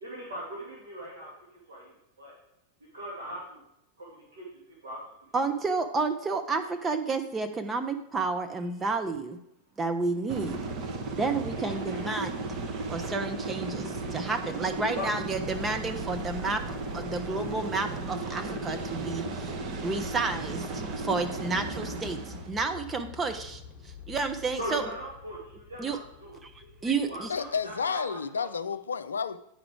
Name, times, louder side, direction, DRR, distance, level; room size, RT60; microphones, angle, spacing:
voice 1, 0.0-1.3 1.7-1.9 2.2-2.3 2.9-3.6 4.0-5.0 5.4-5.5 11.5-12.2 15.0-15.1 24.6-28.5, equal, 65° right, -4 dB, 2.0 m, -40 dB
voice 2, 5.3-9.4 9.8-10.6 11.1-12.4 12.9-16.6 16.9-19.5 19.8-24.9 25.8-26.0 26.4-27.3, right 4 dB, 20° right, 6 dB, 0.6 m, -31 dB
sound 1, 10.3-22.5, right 2 dB, 40° right, 1.0 m, -35 dB
sound 2, 18.6-27.9, left 7 dB, 30° left, 1.1 m, -50 dB
voice 3, 27.3-29.4, left 6 dB, 70° left, 13 dB, 0.4 m, -31 dB
9.2 x 4.9 x 4.8 m, 0.79 s
figure-of-eight pair, 90°, 0 cm